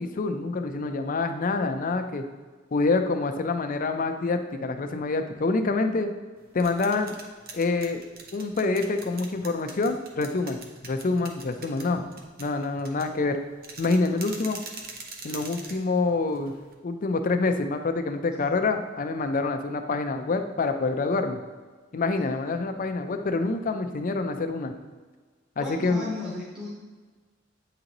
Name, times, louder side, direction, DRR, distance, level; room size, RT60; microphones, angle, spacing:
voice 1, 0.0-2.2 2.7-6.1 6.5-7.2 7.5-8.0 8.3-10.6 10.8-12.1 12.4-13.4 13.8-14.6 15.2-16.5 16.8-21.4 21.9-24.8 25.6-26.1, left 3 dB, 45° left, 7 dB, 0.5 m, -26 dB
sound 1, 6.4-16.7, right 3 dB, 50° right, 0.8 m, -44 dB
voice 2, 25.6-26.7, left 2 dB, 5° right, -7 dB, 1.0 m, -35 dB
8.6 x 3.9 x 2.9 m, 1.4 s
head